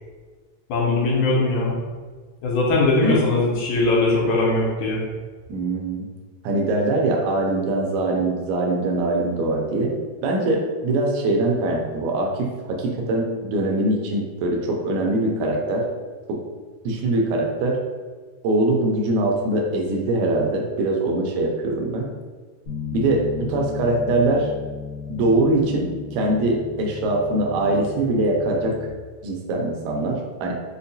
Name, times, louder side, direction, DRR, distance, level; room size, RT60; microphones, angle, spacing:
voice 1, 0.7-1.7 2.4-5.0, left 2 dB, 80° left, -4 dB, 2.2 m, -20 dB
voice 2, 5.5-6.1 6.4-15.9 16.3-16.4 16.8-17.8 18.4-22.1 22.9-24.5 25.1-28.8 29.2-30.5, right 2 dB, 80° right, 0 dB, 1.8 m, -22 dB
Bass guitar, 22.7-28.9, left 6 dB, 55° left, 1.7 m, -35 dB
5.2 x 2.1 x 2.6 m, 1.4 s
omnidirectional pair, 3.5 m